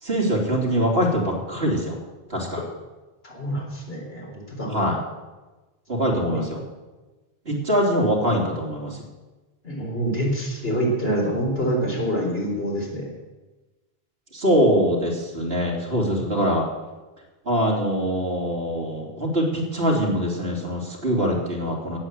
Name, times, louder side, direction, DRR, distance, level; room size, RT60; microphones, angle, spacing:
voice 1, 0.0-2.0 2.3-2.6 4.7-5.0 5.9-6.6 7.4-9.0 14.3-16.6 17.4-22.0, equal, 70° right, -1 dB, 3.3 m, -23 dB
voice 2, 3.2-4.7 6.3-6.4 9.6-13.0, right 1 dB, 70° left, -2 dB, 4.2 m, -26 dB
17.5 x 7.9 x 7.7 m, 1.2 s
omnidirectional pair, 1.1 m